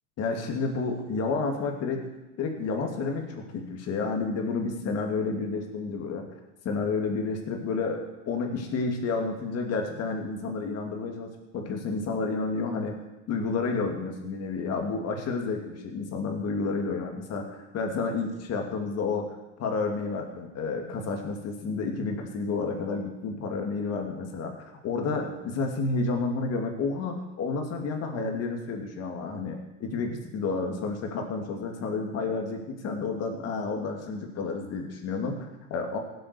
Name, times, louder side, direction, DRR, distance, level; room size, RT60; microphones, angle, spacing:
voice 1, 0.2-2.0 2.4-6.3 6.6-13.0 13.3-24.5 24.8-36.0, left 4 dB, 40° left, 3 dB, 2.8 m, -30 dB
17.0 x 8.0 x 7.0 m, 1.0 s
supercardioid pair, 125°, 37 cm